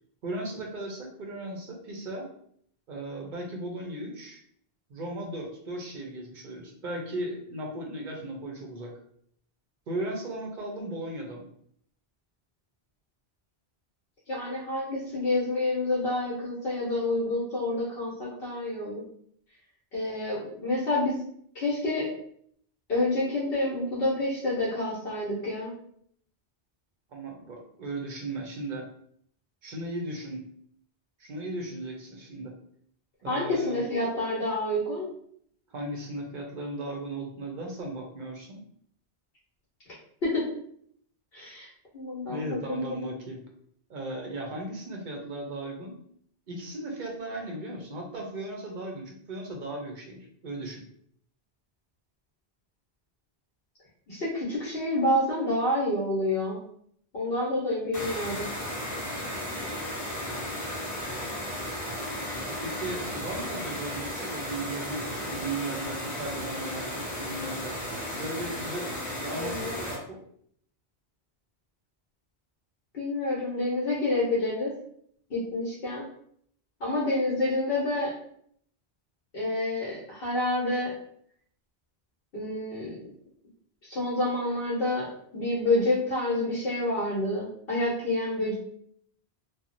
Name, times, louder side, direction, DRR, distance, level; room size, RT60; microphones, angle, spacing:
voice 1, 0.2-2.3 2.9-4.4 4.9-8.9 9.9-11.5 27.1-28.9 29.6-30.4 31.2-32.5 33.2-33.8 35.7-38.6 42.3-43.4 43.9-45.9 46.5-50.8 62.5-67.8 68.1-68.9 69.2-70.2, right 1 dB, 55° right, 0 dB, 0.6 m, -36 dB
voice 2, 14.3-19.0 19.9-21.1 21.5-22.1 22.9-25.7 33.3-35.1 40.2-40.5 41.3-41.7 41.9-43.1 54.1-56.6 57.1-58.5 69.3-69.7 72.9-74.7 75.3-76.0 76.8-78.1 79.3-80.9 82.3-82.9 83.8-85.1 85.3-88.5, left 2 dB, 60° left, -6 dB, 1.0 m, -28 dB
sound 1, 57.9-70.0, left 1 dB, 15° left, 0.8 m, -34 dB
2.9 x 2.0 x 2.5 m, 0.66 s
omnidirectional pair, 1.1 m